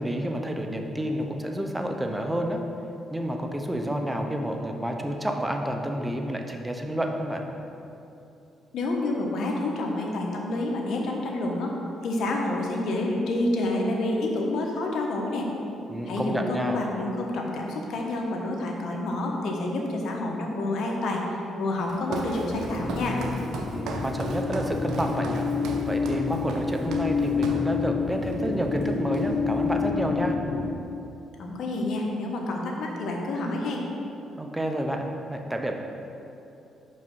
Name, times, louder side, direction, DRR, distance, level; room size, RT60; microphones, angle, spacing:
voice 1, 0.0-2.6 3.1-7.4 15.9-16.8 23.6-25.5 25.9-30.4 34.4-35.7, right 1 dB, 10° right, 3 dB, 0.7 m, -29 dB
voice 2, 8.7-11.7 12.0-15.5 16.1-21.2 21.6-23.2 31.4-33.9, left 2 dB, 70° left, 0 dB, 1.1 m, -28 dB
Walk footsteps, 21.8-27.8 28.2-28.5 28.8-29.6, right 3 dB, 75° right, 0.7 m, -37 dB
sound 1, 22.5-30.7, left 5 dB, 25° left, 0.7 m, -28 dB
5.4 x 5.4 x 5.4 m, 2.8 s
cardioid pair, 90°, 0 cm